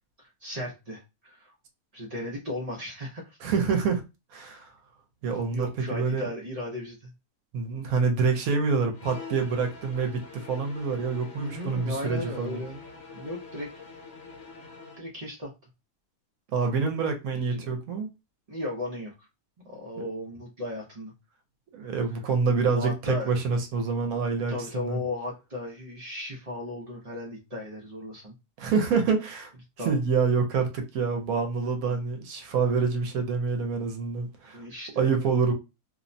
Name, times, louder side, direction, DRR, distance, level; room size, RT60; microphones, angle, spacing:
voice 1, 0.2-1.6 1.9-3.4 5.5-7.1 11.3-12.8 13.1-13.8 14.9-15.5 17.3-17.7 18.5-19.3 19.6-21.1 22.6-23.3 24.5-28.3 29.8-30.0 31.9-32.0 34.5-35.1, left 1 dB, 90° right, 0.3 m, -36 dB
voice 2, 3.4-4.0 4.3-4.7 5.2-6.3 7.5-12.6 16.5-18.1 21.7-25.0 28.6-29.5 29.8-34.6 35.0-35.5, right 5 dB, 70° right, 1.0 m, -27 dB
sound 1, 8.9-15.1, left 4 dB, 70° left, 1.0 m, -45 dB
2.8 x 2.0 x 2.6 m
omnidirectional pair, 1.6 m